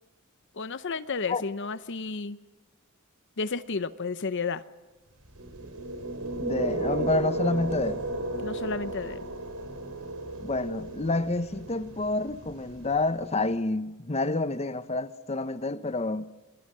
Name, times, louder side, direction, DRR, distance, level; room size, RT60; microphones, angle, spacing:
voice 1, 0.5-2.4 3.4-4.6 8.4-9.2, left 4 dB, 55° left, 0.8 m, -32 dB
sound 1, 5.2-13.3, right 2 dB, 80° right, 4.0 m, -34 dB
voice 2, 6.4-8.0 10.4-16.2, left 2 dB, 30° left, 0.9 m, -28 dB
28.0 x 21.5 x 7.7 m
head